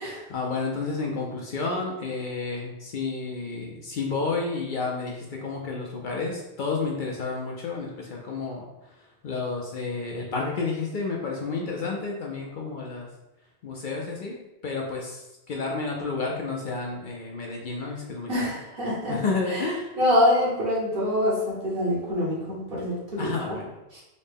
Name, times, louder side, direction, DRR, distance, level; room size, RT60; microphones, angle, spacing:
voice 1, 0.3-8.7 9.2-13.1 13.6-14.4 14.6-18.5 19.1-19.9 23.2-23.6, left 4 dB, 60° left, -1 dB, 0.6 m, -31 dB
voice 2, 18.3-19.2 19.5-19.6 20.0-23.3 23.9-24.0, left 1 dB, 60° right, -6 dB, 1.3 m, -25 dB
3.9 x 2.1 x 3.4 m, 0.97 s
omnidirectional pair, 1.1 m